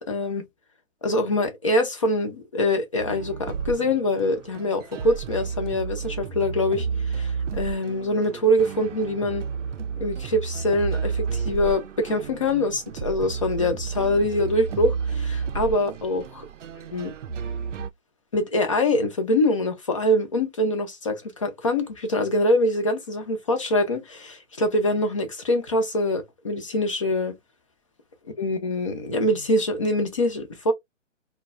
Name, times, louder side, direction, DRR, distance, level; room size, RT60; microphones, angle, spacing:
voice 1, 0.1-0.4 1.0-9.4 10.0-16.2 16.9-17.1 18.3-27.3 28.4-30.7, left 1 dB, 25° left, 0.5 m, -24 dB
sound 1, 3.0-17.9, right 6 dB, 70° right, 0.5 m, -31 dB
2.2 x 2.1 x 3.6 m
hypercardioid pair, 150°, 38 cm